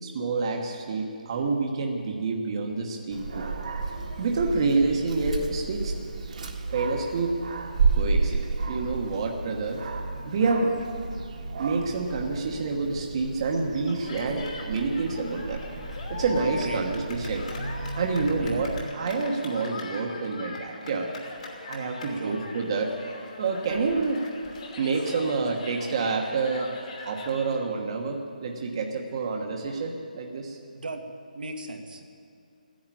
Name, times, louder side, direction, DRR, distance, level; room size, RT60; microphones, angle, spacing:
voice 1, 0.0-3.5 4.2-5.9 6.7-7.4 7.9-9.8 10.2-10.7 11.6-15.7 16.1-17.5 17.9-21.1 21.7-22.9 23.4-24.2 24.8-26.7 27.0-30.6, right 4 dB, 35° right, 1 dB, 1.3 m, -28 dB
Dog, 3.1-18.8, right 4 dB, 55° right, 1.7 m, -32 dB
Cheering, 13.9-27.5, left 3 dB, 50° left, 2.9 m, -42 dB
voice 2, 30.7-31.0 31.3-32.1, right 2 dB, 80° right, 3 dB, 1.9 m, -37 dB
13.5 x 10.5 x 9.1 m, 2.4 s
hypercardioid pair, 165°, 5 cm